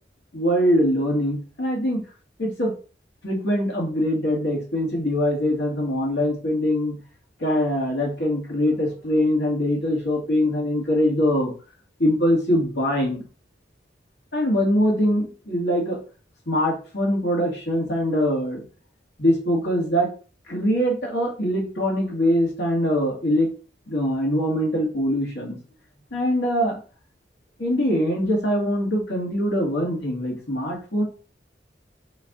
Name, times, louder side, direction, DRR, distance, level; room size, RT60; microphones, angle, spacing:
voice 1, 0.3-2.0 2.4-2.7 3.2-7.0 7.4-11.5 12.0-13.2 14.3-16.0 16.5-18.6 19.2-20.1 20.5-23.5 23.9-25.6 26.1-26.8 27.6-31.0, equal, 80° left, -1 dB, 2.3 m, -23 dB
5.2 x 4.6 x 4.0 m, 0.36 s
head